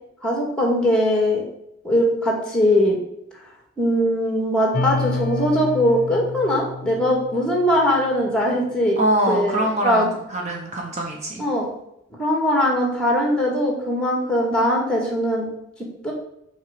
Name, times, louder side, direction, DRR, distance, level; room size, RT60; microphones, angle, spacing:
voice 1, 0.2-1.4 1.8-3.0 3.8-9.0 9.3-10.1 11.4-11.7 12.2-15.5 16.0-16.1, equal, 5° left, -1 dB, 1.9 m, -20 dB
sound 1, 4.7-8.2, left 3 dB, 45° left, 0.6 m, -29 dB
voice 2, 9.0-10.0 10.3-11.4, right 1 dB, 35° right, 0 dB, 1.1 m, -23 dB
6.4 x 4.5 x 6.7 m, 0.79 s
head